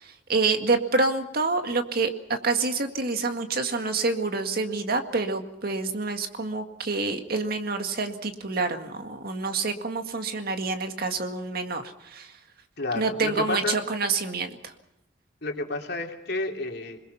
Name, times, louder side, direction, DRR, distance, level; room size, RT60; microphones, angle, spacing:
voice 1, 0.0-12.3 12.9-14.7, right 3 dB, 55° right, 6 dB, 2.0 m, -27 dB
voice 2, 12.8-13.8 15.4-17.0, left 2 dB, 60° left, 2 dB, 3.1 m, -31 dB
27.5 x 21.0 x 5.7 m, 0.88 s
head